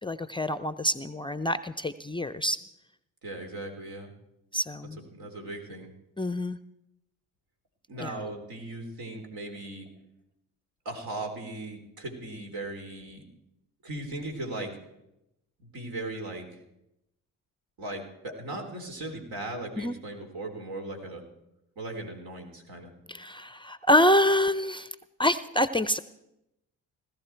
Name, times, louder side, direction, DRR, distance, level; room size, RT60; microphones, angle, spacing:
voice 1, 0.0-2.6 4.5-5.0 6.2-6.6 8.0-8.1 19.8-20.0 23.1-24.9 25.2-26.0, left 1 dB, 15° left, 14 dB, 0.6 m, -26 dB
voice 2, 3.2-4.1 5.0-5.9 7.9-9.9 10.9-13.2 13.8-14.8 15.6-16.6 17.8-21.2 21.8-22.9, right 2 dB, 65° right, 3 dB, 3.5 m, -38 dB
18.0 x 14.0 x 4.5 m, 0.86 s
supercardioid pair, 65°, 38 cm